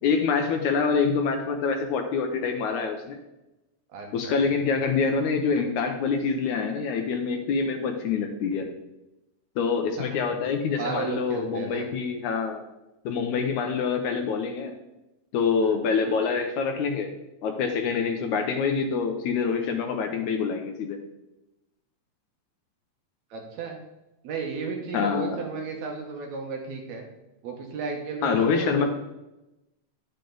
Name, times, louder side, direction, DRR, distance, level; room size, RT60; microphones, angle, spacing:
voice 1, 0.0-3.2 4.1-8.7 9.6-12.6 13.1-14.7 15.3-17.1 17.4-21.0 24.9-25.4 28.2-28.9, left 5 dB, 75° left, 5 dB, 2.0 m, -26 dB
voice 2, 3.9-4.4 10.0-10.2 10.8-11.9 15.6-15.8 23.3-23.8 24.2-27.0 27.4-28.9, right 4 dB, 65° right, 1 dB, 2.2 m, -34 dB
10.5 x 6.7 x 3.9 m, 0.97 s
omnidirectional pair, 3.8 m